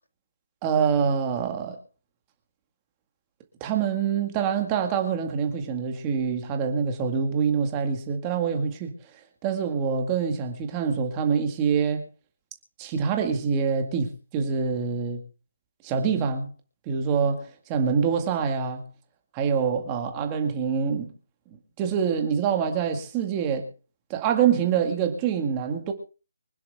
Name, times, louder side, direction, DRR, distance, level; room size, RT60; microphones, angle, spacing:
voice 1, 0.6-1.8 3.6-8.9 9.4-12.0 12.8-15.2 15.8-16.5 16.9-18.8 19.3-21.1 21.5-23.7 24.1-25.9, right 6 dB, 10° right, 2.0 m, -25 dB
25.0 x 10.5 x 3.6 m
hypercardioid pair, 180°, 0 cm